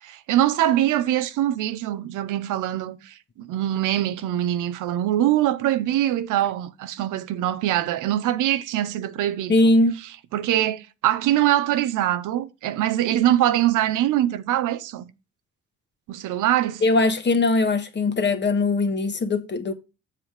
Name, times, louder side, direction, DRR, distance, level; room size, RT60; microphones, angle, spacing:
voice 1, 0.0-9.6 10.3-15.0 16.1-16.8, right 12 dB, 85° right, 0.8 m, -23 dB
voice 2, 9.5-10.0 16.8-19.7, left 2 dB, 35° left, 1.5 m, -20 dB
7.5 x 7.4 x 3.3 m
cardioid pair, 90°, 30 cm